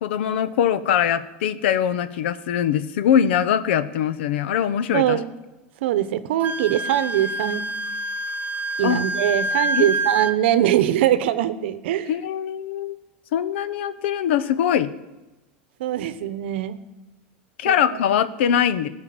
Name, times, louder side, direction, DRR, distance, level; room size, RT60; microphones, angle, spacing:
voice 1, 0.0-5.2 8.8-9.0 9.7-9.9 12.1-13.0 13.3-14.9 17.6-18.9, left 9 dB, 80° left, 15 dB, 0.8 m, -22 dB
voice 2, 4.9-5.3 5.8-7.7 8.8-12.1 15.8-16.8 17.6-18.0, right 12 dB, 75° right, 13 dB, 0.9 m, -22 dB
Wind instrument woodwind instrument, 6.4-10.3, right 1 dB, 25° right, 0.9 m, -27 dB
18.0 x 6.5 x 7.7 m, 1.1 s
supercardioid pair, 115°, 6 cm